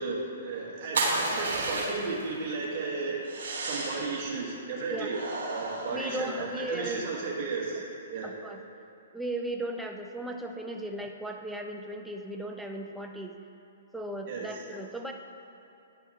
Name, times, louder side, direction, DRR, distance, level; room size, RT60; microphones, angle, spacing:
voice 1, 0.0-3.3 3.6-5.2 5.5-7.8 8.1-8.3 14.3-14.6, right 3 dB, 40° right, -4 dB, 1.3 m, -34 dB
sound 1, 0.9-2.2 3.2-4.2 5.1-6.7, right 3 dB, 70° right, 1.3 m, -32 dB
voice 2, 5.9-7.1 8.2-8.6 9.1-13.3 13.9-15.1, right 1 dB, 5° right, 2 dB, 0.4 m, -36 dB
9.6 x 5.5 x 2.8 m, 2.8 s
hypercardioid pair, 130°, 0 cm